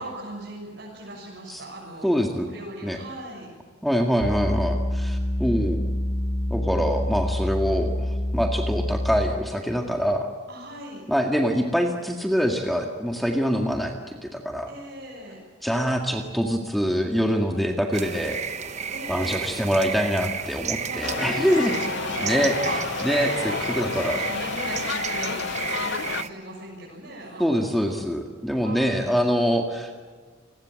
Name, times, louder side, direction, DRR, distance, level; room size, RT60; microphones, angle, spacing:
voice 1, 0.0-2.1 2.4-3.5 10.5-11.0 14.7-15.4 18.9-19.4 20.8-23.0 23.2-27.8 28.6-29.1, right 1 dB, 60° right, -4 dB, 7.1 m, -37 dB
voice 2, 2.0-2.5 2.8-3.0 3.8-5.8 6.5-10.3 11.1-13.9 14.2-14.7 15.6-18.4 19.1-21.7 22.2-22.5 23.0-24.2 27.4-29.9, equal, ahead, 2 dB, 1.9 m, -24 dB
sound 1, 4.2-9.5, left 1 dB, 80° left, 4.0 m, -27 dB
sound 2, 17.9-26.3, right 6 dB, 35° right, 1.1 m, -32 dB
sound 3, 21.0-26.2, left 6 dB, 60° left, 0.7 m, -30 dB
29.5 x 21.0 x 7.7 m, 1.5 s
head